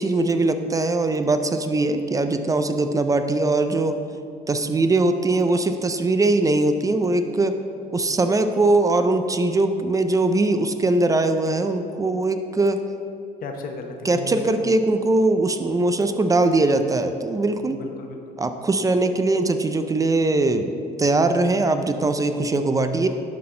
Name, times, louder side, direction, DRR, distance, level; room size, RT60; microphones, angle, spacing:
voice 1, 0.0-4.0 4.5-7.5 7.9-12.8 14.0-17.8 18.4-20.7 21.0-23.1, right 2 dB, 20° right, 8 dB, 0.4 m, -21 dB
voice 2, 13.4-14.8 17.7-18.4, left 3 dB, 60° left, 3 dB, 0.9 m, -35 dB
11.5 x 4.0 x 3.8 m, 2.5 s
cardioid pair, 110°, 17 cm